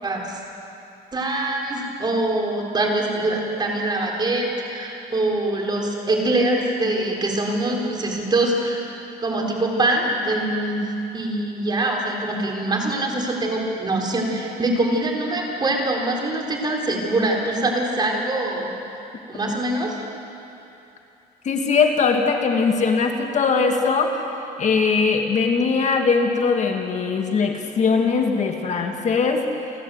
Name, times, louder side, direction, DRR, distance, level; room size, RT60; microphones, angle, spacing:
voice 1, 0.0-0.4 1.1-8.9 9.2-10.8 11.1-18.7 19.3-19.9, right 2 dB, 25° right, 0 dB, 4.2 m, -23 dB
voice 2, 21.4-24.2 24.6-29.5, left 5 dB, 45° left, 3 dB, 1.8 m, -20 dB
29.0 x 12.5 x 7.9 m, 2.8 s
cardioid pair, 110°, 17 cm